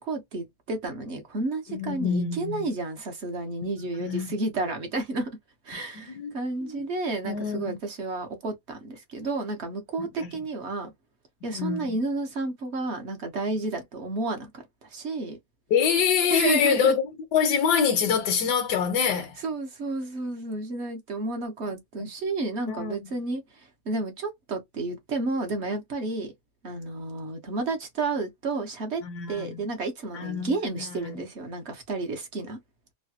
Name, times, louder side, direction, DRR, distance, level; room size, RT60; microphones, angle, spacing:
voice 1, 0.0-5.3 5.6-10.9 11.4-14.5 14.8-15.4 16.3-16.9 19.1-26.3 26.6-29.0 29.3-32.6, right 3 dB, 55° right, 0.8 m, -31 dB
voice 2, 1.7-2.6 4.0-4.3 5.9-6.3 6.6-6.9 7.2-7.8 10.0-10.4 11.5-11.9 15.7-17.0 17.3-19.4 22.0-22.1 22.7-23.1 29.0-29.6 30.1-31.2, left 7 dB, 80° left, 1.3 m, -26 dB
3.2 x 2.2 x 2.7 m
omnidirectional pair, 1.8 m